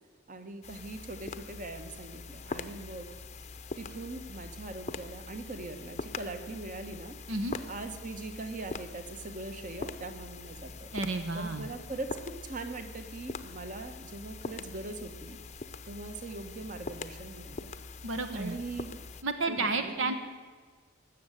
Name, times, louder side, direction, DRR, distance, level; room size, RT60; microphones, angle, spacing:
voice 1, 0.3-3.1 3.8-7.2 7.7-10.9 11.3-15.4 15.9-17.7 18.3-19.0 19.5-20.1, right 2 dB, 40° right, 7 dB, 1.3 m, -41 dB
sound 1, 0.6-19.2, left 3 dB, 35° left, 0.7 m, -43 dB
voice 2, 10.9-11.7 18.0-18.6 19.2-20.1, right 3 dB, 70° right, 8 dB, 1.0 m, -31 dB
18.5 x 7.5 x 9.0 m, 1.5 s
head